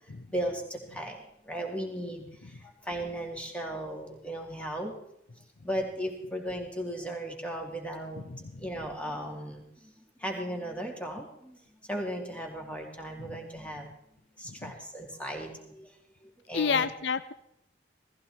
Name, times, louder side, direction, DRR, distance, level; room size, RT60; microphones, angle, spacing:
voice 1, 0.3-1.2 1.4-4.9 5.6-8.2 8.6-9.9 10.2-11.6 11.9-13.9 14.4-15.9 16.5-16.9, right 1 dB, 5° left, 1 dB, 2.7 m, -36 dB
voice 2, 8.3-8.6 13.2-13.4 14.6-14.7 16.5-17.3, left 6 dB, 70° left, 14 dB, 0.6 m, -30 dB
17.5 x 15.0 x 4.3 m, 0.77 s
head